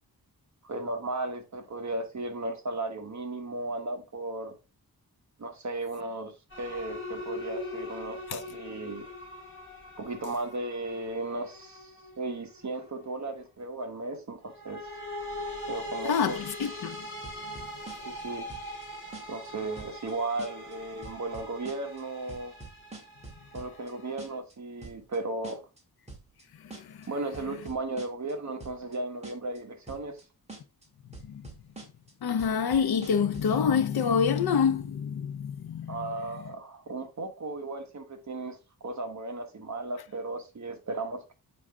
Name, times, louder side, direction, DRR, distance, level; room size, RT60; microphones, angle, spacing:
voice 1, 0.6-4.6 5.4-9.1 10.0-14.8 15.7-16.7 18.0-18.5 19.3-22.5 23.5-25.6 27.1-30.2 35.9-41.3, right 2 dB, 45° right, 1.3 m, -35 dB
sound 1, 6.5-13.0 14.5-24.4, left 1 dB, 30° left, 3.0 m, -41 dB
voice 2, 16.6-17.0 32.2-36.0, left 6 dB, 80° left, 0.7 m, -26 dB
sound 2, 16.6-17.0 17.2-18.2 18.5-18.9 19.1-19.5 19.8-20.1 20.4-20.7 21.0-22.0 22.3-23.9 24.2-24.5 24.8-25.2 25.4-25.8 26.1-26.4 26.7-27.1 27.3-28.3 28.6-29.0 29.2-29.6 29.9-30.2 30.5-30.9 31.1-32.1 32.4-33.6, right 3 dB, 15° right, 1.9 m, -45 dB
7.6 x 4.8 x 3.6 m
wide cardioid pair, 140°, 38 cm